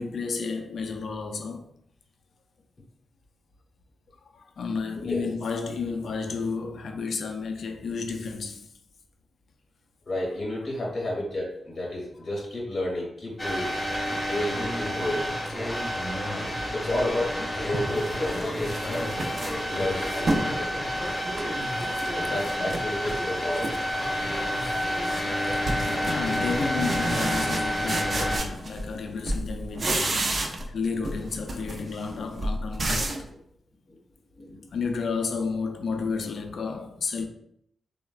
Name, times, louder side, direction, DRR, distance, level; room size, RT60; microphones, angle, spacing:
voice 1, 0.0-1.7 4.3-8.7 16.1-16.5 21.8-22.1 24.6-24.8 26.0-33.1 34.7-37.3, left 4 dB, 75° left, 0.3 m, -32 dB
voice 2, 5.0-5.3 10.1-13.8 14.3-15.3 16.7-17.4 17.6-19.2 19.7-20.7 22.1-23.8 28.5-28.6 32.1-32.3 33.2-33.4 33.9-34.0 34.3-34.7, left 1 dB, 55° left, 0.7 m, -31 dB
sound 1, 13.4-28.4, equal, 15° left, 0.6 m, -29 dB
sound 2, 17.1-17.2 17.7-20.5 21.0-22.1 22.4-23.2 23.5-24.0 24.3-29.0 29.3-30.8 31.0-33.3, right 2 dB, 50° right, 0.4 m, -31 dB
3.0 x 2.1 x 2.3 m
cardioid pair, 65°, 0 cm